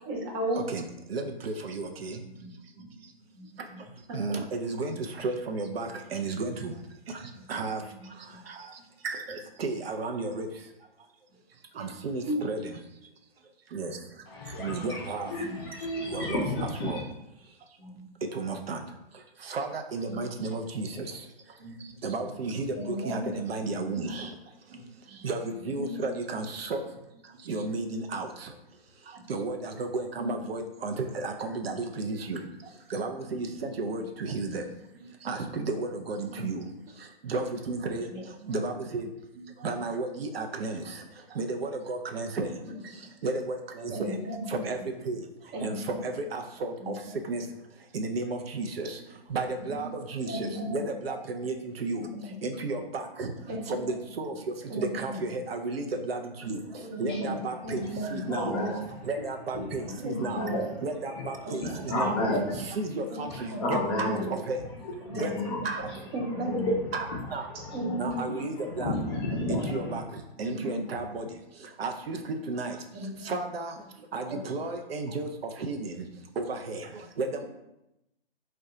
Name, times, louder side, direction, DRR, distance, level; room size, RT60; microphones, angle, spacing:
voice 1, 0.1-0.6 4.1-4.4 12.3-12.5 22.7-23.3 24.0-24.1 25.8-25.9 30.2-30.4 36.3-36.5 38.1-38.6 42.3-42.8 43.9-44.5 45.5-45.8 46.8-46.9 50.3-51.2 51.9-52.3 53.5-53.8 54.7-55.2 56.8-57.4 57.6-58.6 59.5-60.6 61.4-61.6 61.9-62.1 63.1-63.2 63.5-63.6 65.0-65.3 66.1-66.5 67.7-68.2 68.8-69.2 70.5-70.8 72.9-73.3 74.3-74.4, equal, 20° right, -2 dB, 0.6 m, -35 dB
voice 2, 1.1-2.2 4.1-6.7 7.1-7.2 7.5-7.8 8.5-8.7 9.0-10.5 11.8-12.8 13.7-14.0 14.6-15.3 16.1-17.0 18.3-18.8 19.4-21.1 22.0-24.3 25.2-26.8 27.5-28.5 29.3-32.4 32.9-34.6 35.2-36.6 37.2-38.1 38.5-39.1 39.6-41.0 41.4-42.5 43.2-44.1 44.5-44.8 45.1-45.2 45.6-46.9 47.3-47.4 47.9-49.0 49.3-52.1 52.4-53.3 53.7-54.3 54.7-56.6 57.0-58.5 59.0-60.4 60.8-62.2 62.6-64.6 65.1-65.3 65.6-65.8 66.9-67.1 67.3-67.5 68.0-68.9 69.5-70.0 70.4-71.3 71.8-72.8 73.2-73.7 74.1-75.3 75.6-76.1 76.4-77.4, right 3 dB, 75° right, 4 dB, 0.5 m, -33 dB
voice 3, 2.2-3.9 5.8-5.9 7.2-7.5 7.8-8.4 14.3-14.7 15.4-15.6 17.8-18.1 20.1-20.2 21.6-22.5 24.1-24.2 24.7-25.2 25.5-25.7 29.1-29.2 33.7-34.1 34.9-35.1 36.0-36.1 37.9-38.2 39.3-39.5 42.3-42.4 43.0-43.1 44.7-45.0 49.0-49.1 49.6-49.9 50.2-50.4 53.3-53.7 54.3-54.4 55.5-55.6 60.0-60.1 65.9-66.0 70.0-70.2 71.1-71.3 72.1-72.2 72.9-73.0 74.2-74.3, right 2 dB, 55° right, -1 dB, 1.0 m, -48 dB
voice 4, 14.3-17.0 57.1-57.3 58.3-59.0 59.7-59.8 60.1-60.6 61.5-62.8 63.6-64.3 64.8-66.0 66.2-66.8 67.1-67.2 67.6-70.0, left 1 dB, 25° left, -2 dB, 0.4 m, -32 dB
2.6 x 2.2 x 3.6 m, 0.88 s
hypercardioid pair, 135°, 30 cm